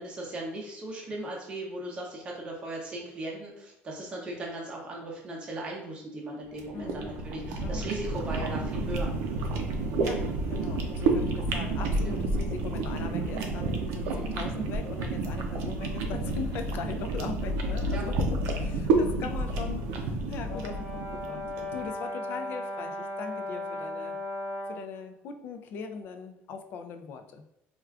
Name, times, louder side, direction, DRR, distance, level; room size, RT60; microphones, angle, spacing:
voice 1, 0.0-9.1 12.1-12.2 14.0-14.4 17.9-18.0 19.2-19.4, right 1 dB, 20° right, -2 dB, 0.6 m, -38 dB
sound 1, 6.5-21.8, right 2 dB, 90° right, 0.5 m, -30 dB
voice 2, 6.7-7.1 7.5-7.9 10.0-21.4 21.7-24.2 24.7-27.4, left 5 dB, 45° left, 7 dB, 0.3 m, -40 dB
Brass instrument, 20.5-24.9, left 1 dB, 80° left, 0.9 m, -36 dB
4.4 x 2.4 x 2.3 m, 0.84 s
cardioid pair, 175°, 5 cm